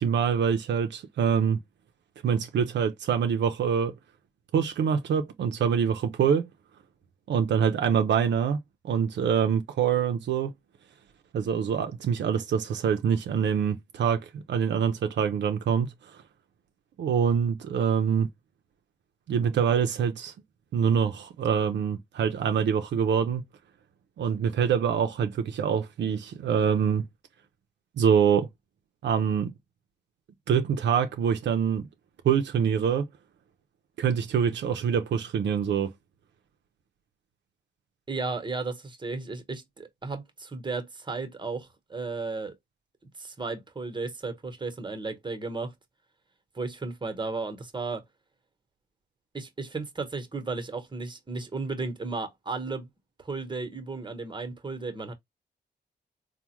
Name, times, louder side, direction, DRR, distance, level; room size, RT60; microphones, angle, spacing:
voice 1, 0.0-1.6 2.2-3.9 4.5-6.5 7.3-8.6 8.8-10.5 11.3-15.9 17.0-18.3 19.3-20.3 20.7-23.4 24.2-27.1 28.0-28.5 29.0-29.5 30.5-31.9 32.2-33.0 34.0-35.9, right 7 dB, 80° right, 0.5 m, -25 dB
voice 2, 38.1-42.5 43.2-45.7 46.5-48.0 49.3-52.9 53.2-55.1, right 3 dB, 25° right, 0.9 m, -34 dB
3.4 x 2.1 x 2.9 m
cardioid pair, 65°, 18 cm